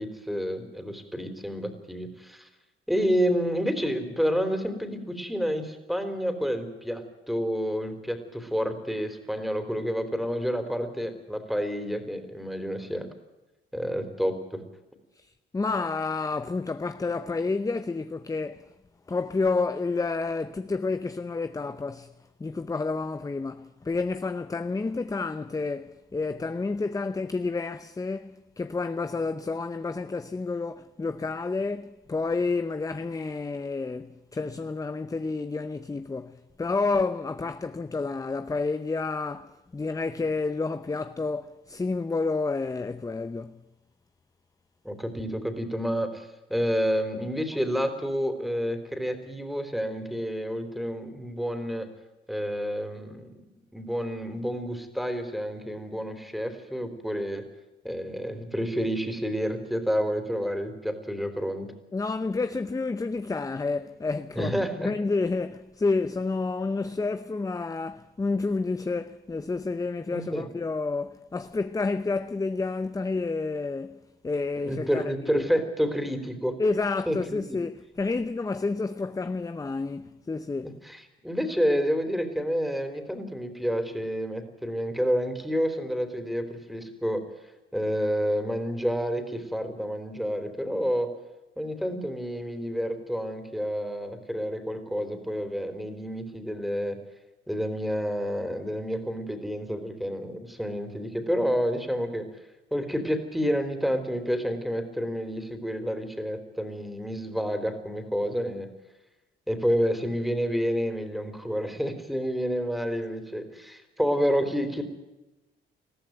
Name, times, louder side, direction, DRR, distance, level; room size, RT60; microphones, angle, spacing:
voice 1, 0.0-2.5 2.9-13.1 13.7-14.6 44.8-51.9 52.3-53.4 53.7-57.4 57.8-61.7 64.4-64.9 70.1-70.5 74.7-76.6 77.1-77.6 80.6-87.2 87.7-91.1 91.6-97.0 97.5-102.3 102.7-108.7 109.5-114.8, equal, ahead, 3.6 m, -29 dB
voice 2, 15.5-18.7 19.1-22.1 22.4-43.6 61.9-75.5 76.6-80.8, left 3 dB, 15° left, 0.7 m, -30 dB
21.0 x 14.5 x 9.2 m
cardioid pair, 90°, 20 cm